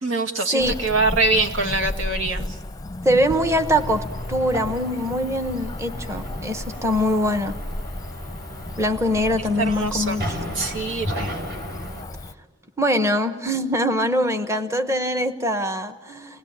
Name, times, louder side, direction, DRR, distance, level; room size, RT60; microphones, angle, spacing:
voice 1, 0.0-2.6 9.6-10.2 10.5-11.3, right 3 dB, 80° right, 2 dB, 2.3 m, -24 dB
Cricket / Motor vehicle (road), 0.6-12.3, left 2 dB, 20° left, 0.7 m, -35 dB
voice 2, 3.0-4.0 4.3-7.6 8.8-10.2 12.8-16.4, equal, 15° right, 8 dB, 1.1 m, -23 dB
sound 1, 3.3-12.0, equal, 55° right, 6.2 m, -34 dB
28.5 x 20.0 x 8.8 m, 1.4 s
head